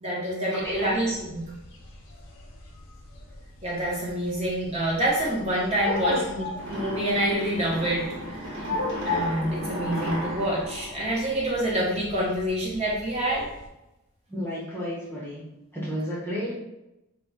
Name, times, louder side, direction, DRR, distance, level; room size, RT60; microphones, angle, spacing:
voice 1, 0.0-1.4 3.6-8.6 9.0-13.5, right 1 dB, 30° right, -5 dB, 0.7 m, -27 dB
voice 2, 0.5-1.0 6.1-6.2 8.7-8.8 14.3-15.4 15.7-16.5, equal, 10° left, -7 dB, 0.6 m, -32 dB
sound 1, 0.6-13.7, left 2 dB, 65° left, 0.5 m, -37 dB
sound 2, 6.5-11.9, equal, 90° right, 1.0 m, -35 dB
2.2 x 2.1 x 3.8 m, 0.91 s
head